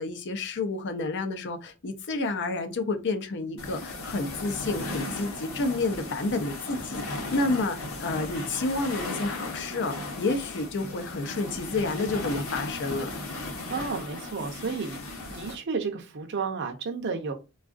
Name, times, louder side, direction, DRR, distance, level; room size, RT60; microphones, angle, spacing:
voice 1, 0.0-13.1, left 3 dB, 55° left, 0.6 m, -30 dB
sound 1, 3.6-15.6, left 2 dB, 75° left, 0.9 m, -36 dB
voice 2, 13.7-15.0 15.3-17.3, right 5 dB, 55° right, 0.6 m, -32 dB
3.5 x 2.4 x 2.4 m
head